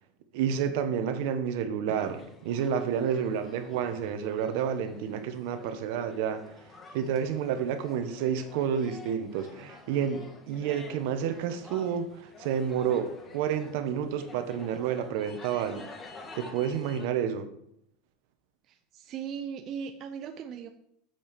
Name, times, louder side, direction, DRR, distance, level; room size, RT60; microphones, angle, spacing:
voice 1, 0.3-6.4 6.9-15.8 16.3-17.5, right 8 dB, 65° right, 1.2 m, -30 dB
sound 1, 1.9-17.1, left 3 dB, 20° left, 1.7 m, -50 dB
voice 2, 18.7-20.7, right 7 dB, 40° right, 0.7 m, -38 dB
7.2 x 6.2 x 6.8 m
supercardioid pair, 135°, 0 cm